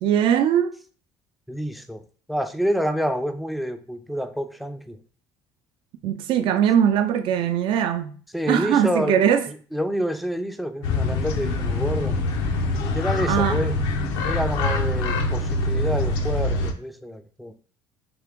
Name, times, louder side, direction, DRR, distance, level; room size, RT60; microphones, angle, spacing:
voice 1, 0.0-0.7 6.0-8.1 8.5-9.4 13.3-13.7, right 9 dB, 65° right, 0.5 m, -20 dB
voice 2, 1.5-2.0 2.3-5.0 8.3-12.2 12.8-13.8 14.2-17.5, equal, ahead, 0.4 m, -28 dB
sound 1, 10.8-16.7, left 2 dB, 80° left, 0.6 m, -24 dB
3.5 x 2.9 x 3.5 m
cardioid pair, 105°, 9 cm